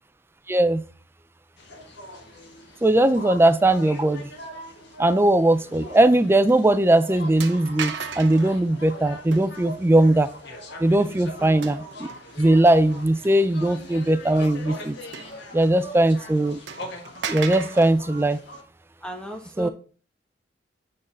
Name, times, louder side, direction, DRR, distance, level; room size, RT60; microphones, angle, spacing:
voice 1, 0.5-0.8 2.8-4.3 5.0-10.3 10.8-12.1 12.4-15.0 15.5-16.6 17.3-18.4 19.6-19.7, right 1 dB, 15° right, 0.4 m, -19 dB
sound 1, 1.6-18.6, left 1 dB, 65° left, 1.6 m, -42 dB
sound 2, 5.9-6.2 6.5-6.6 7.4-8.5 9.3-9.8 11.6-12.4 12.9-13.0 15.1-15.9 16.2-16.3 16.7-18.0, right 6 dB, 75° right, 0.9 m, -35 dB
voice 2, 19.0-19.7, right 1 dB, 5° left, 1.2 m, -36 dB
8.7 x 3.9 x 4.3 m
head